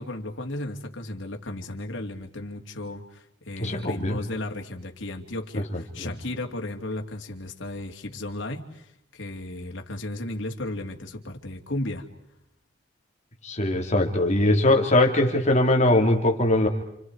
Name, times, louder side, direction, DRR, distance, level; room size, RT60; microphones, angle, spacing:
voice 1, 0.0-8.9 9.1-12.1, left 1 dB, 85° left, 3 dB, 2.6 m, -34 dB
voice 2, 3.6-4.2 5.5-6.1 13.4-16.7, left 1 dB, 40° left, 3 dB, 3.0 m, -21 dB
29.5 x 28.5 x 4.8 m, 0.78 s
head